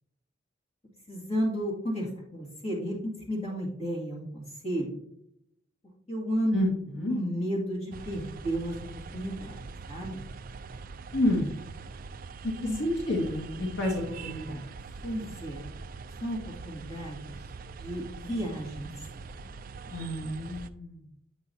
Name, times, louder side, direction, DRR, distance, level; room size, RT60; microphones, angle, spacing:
voice 1, 1.1-2.1 2.3-2.9 3.3-5.0 6.1-6.5 7.1-8.8 9.1-10.2 12.6-12.7 15.0-15.6 16.2-17.4 17.8-18.9, equal, 35° left, -4 dB, 2.1 m, -32 dB
voice 2, 6.5-7.1 11.1-11.6 12.6-14.7 19.9-21.0, left 1 dB, 80° left, -2 dB, 1.6 m, -29 dB
sound 1, 7.9-20.7, right 4 dB, 50° right, 0.4 m, -43 dB
8.7 x 5.7 x 2.7 m, 0.74 s
head